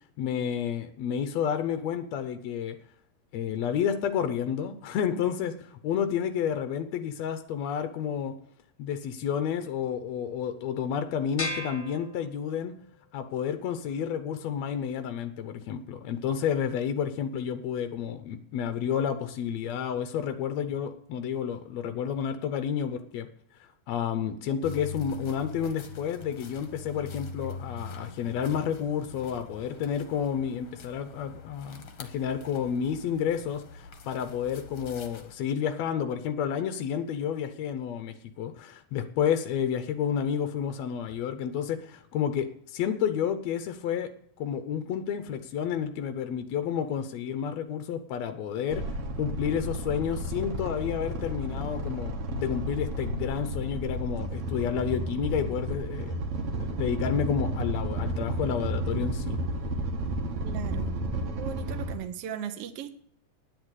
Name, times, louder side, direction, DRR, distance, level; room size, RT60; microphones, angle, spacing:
voice 1, 0.2-2.8 3.3-8.3 8.8-12.7 13.1-23.3 23.9-44.1 44.4-56.2 56.6-59.4, left 8 dB, 80° left, 9 dB, 1.5 m, -30 dB
sound 1, 11.4-12.9, left 1 dB, 25° left, 1.0 m, -36 dB
sound 2, 24.6-35.3, left 4 dB, 60° left, 1.4 m, -43 dB
sound 3, 48.7-61.9, right 1 dB, 55° right, 1.8 m, -32 dB
voice 2, 60.4-61.0 61.4-62.9, right 9 dB, 75° right, 8 dB, 1.4 m, -37 dB
9.8 x 8.6 x 8.1 m, 0.65 s
omnidirectional pair, 4.0 m